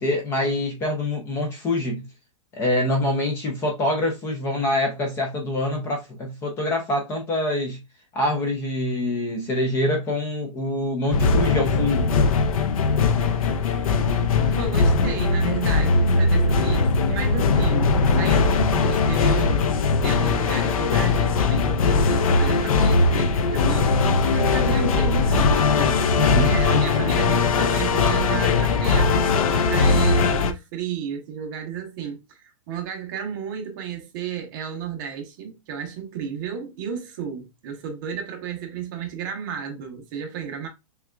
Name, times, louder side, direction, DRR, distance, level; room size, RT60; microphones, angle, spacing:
voice 1, 0.0-2.0 2.5-7.8 8.1-12.1 26.1-26.6, left 1 dB, 15° left, 0.6 m, -25 dB
sound 1, 11.1-30.5, left 4 dB, 75° left, 0.7 m, -20 dB
voice 2, 14.5-40.7, right 7 dB, 35° right, 0.9 m, -33 dB
6.2 x 2.4 x 2.3 m
hypercardioid pair, 165°, 18 cm